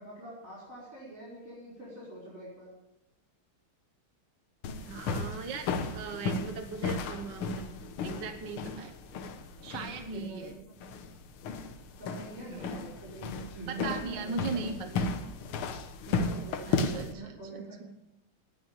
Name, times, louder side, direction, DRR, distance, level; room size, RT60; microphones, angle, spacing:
voice 1, 0.0-2.7 10.1-10.6 12.0-15.1 16.1-17.8, right 2 dB, 35° right, -6 dB, 5.7 m, -45 dB
sound 1, 4.6-17.1, left 4 dB, 80° left, 1.9 m, -35 dB
voice 2, 4.9-7.7 8.0-8.9 9.6-10.6 12.5-12.7 13.8-15.1 16.7-18.0, right 4 dB, 60° right, 5 dB, 1.7 m, -39 dB
18.5 x 6.3 x 8.8 m, 0.90 s
omnidirectional pair, 2.3 m